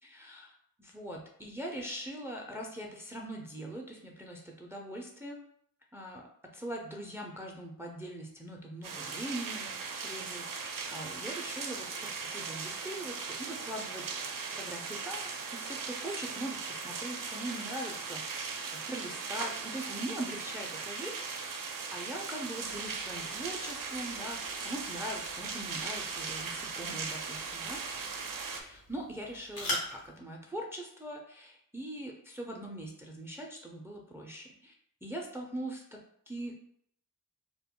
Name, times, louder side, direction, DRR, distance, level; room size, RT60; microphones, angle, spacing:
voice 1, 0.0-0.5 0.8-5.4 5.9-6.3 6.5-9.7 10.0-14.2 14.6-27.8 28.6-34.7 35.0-36.0 36.3-36.5, right 1 dB, 5° right, 0 dB, 0.4 m, -42 dB
sound 1, 8.8-28.6, right 5 dB, 70° right, 0.5 m, -38 dB
sound 2, 22.6-30.2, left 1 dB, 80° left, 1.1 m, -44 dB
2.2 x 2.1 x 3.6 m, 0.67 s
wide cardioid pair, 65°, 34 cm